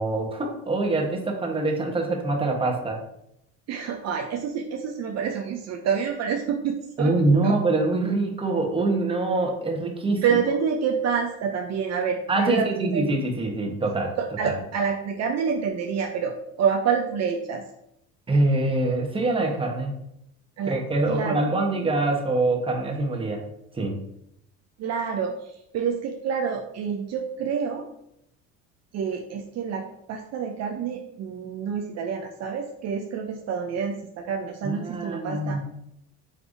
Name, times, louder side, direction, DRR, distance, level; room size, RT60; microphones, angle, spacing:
voice 1, 0.0-3.0 7.0-10.4 12.3-14.1 14.4-14.5 18.3-20.0 20.7-23.4 23.7-24.0 34.6-35.6, right 2 dB, 15° right, 1 dB, 1.0 m, -24 dB
voice 2, 3.7-7.1 7.4-7.6 10.2-13.1 14.2-17.6 20.6-20.8 21.1-21.4 24.8-27.9 28.9-35.6, right 6 dB, 45° right, 2 dB, 0.6 m, -28 dB
5.0 x 3.2 x 2.6 m, 0.78 s
supercardioid pair, 85°, 35 cm